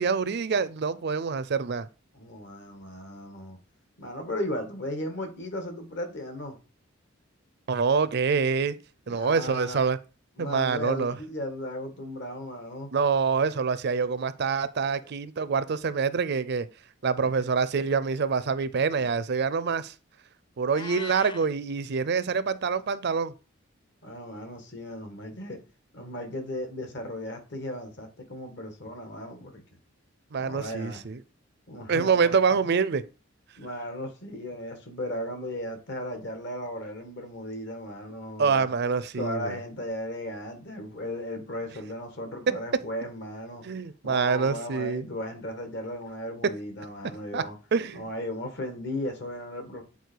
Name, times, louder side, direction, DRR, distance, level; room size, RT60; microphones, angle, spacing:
voice 1, 0.0-1.9 7.7-8.8 9.1-10.0 10.4-11.1 12.9-16.7 17.0-19.9 20.6-23.3 30.3-31.2 31.9-33.0 38.4-39.6 42.5-42.6 43.6-45.1 47.3-47.4 47.7-48.0, right 5 dB, 55° right, 0.5 m, -26 dB
voice 2, 2.1-3.6 4.0-6.6 9.1-9.9 10.4-12.9 24.0-25.6 25.9-29.6 30.4-31.0 31.7-32.7 33.6-38.7 39.2-43.6 44.0-47.6 47.9-49.8, left 1 dB, 60° left, 2.0 m, -36 dB
Meow, 20.7-21.5, left 4 dB, 25° left, 0.4 m, -40 dB
8.2 x 4.4 x 4.7 m
head